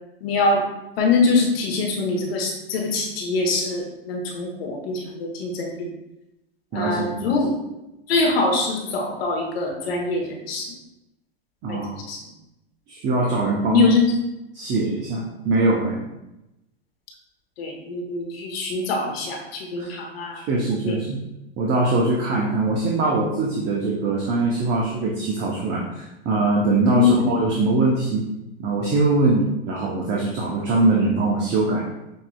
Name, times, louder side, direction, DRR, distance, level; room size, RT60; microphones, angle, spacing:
voice 1, 0.2-0.6 1.0-5.9 6.7-7.5 8.1-10.7 11.7-11.8 12.1-12.2 13.7-14.1 17.6-20.4 20.8-20.9 22.3-22.4 26.9-27.3, left 4 dB, 70° left, 1 dB, 1.2 m, -23 dB
voice 2, 6.7-7.3 11.6-12.0 12.9-13.9 14.5-16.0 19.8-19.9 20.3-21.2 21.6-28.2 28.6-31.8, right 3 dB, 35° right, -3 dB, 0.8 m, -22 dB
6.4 x 2.8 x 2.3 m, 0.92 s
hypercardioid pair, 105°, 31 cm